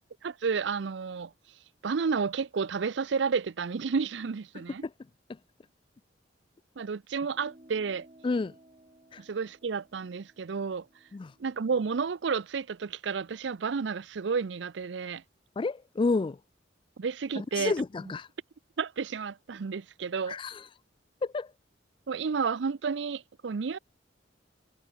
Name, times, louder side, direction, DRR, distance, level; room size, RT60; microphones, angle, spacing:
voice 1, 0.2-1.3 1.8-4.8 6.8-8.1 9.2-10.9 11.4-15.2 17.0-17.7 18.8-20.4 22.1-23.8, right 5 dB, 70° right, 0.5 m, -31 dB
sound 1, 7.3-12.1, right 1 dB, 35° right, 2.7 m, -58 dB
voice 2, 8.2-8.5 9.1-9.2 11.1-11.3 15.6-16.4 17.4-18.3 20.3-20.6 21.2-21.5, left 3 dB, 25° left, 0.3 m, -30 dB
head